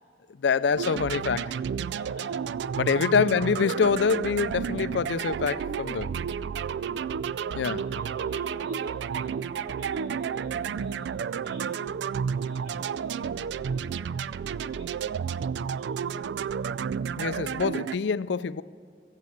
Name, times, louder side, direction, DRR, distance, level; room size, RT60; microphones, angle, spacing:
voice 1, 0.4-1.5 2.8-6.1 7.5-7.8 17.2-18.6, left 5 dB, 75° left, 0.4 m, -25 dB
sound 1, 0.8-18.0, right 7 dB, 70° right, 0.3 m, -31 dB
voice 2, 1.9-3.1 6.5-11.7 12.1-16.7, equal, 85° right, 4.2 m, -50 dB
21.0 x 8.3 x 8.3 m
head